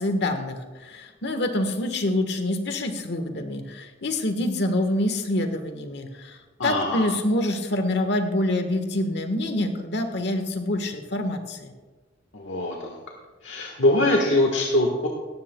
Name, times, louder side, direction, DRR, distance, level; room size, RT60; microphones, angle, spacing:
voice 1, 0.0-11.7, left 1 dB, 65° left, 6 dB, 1.4 m, -26 dB
voice 2, 6.6-7.1 12.3-13.0 13.4-15.1, left 1 dB, 90° left, 1 dB, 1.4 m, -23 dB
17.5 x 14.0 x 2.3 m, 1.3 s
head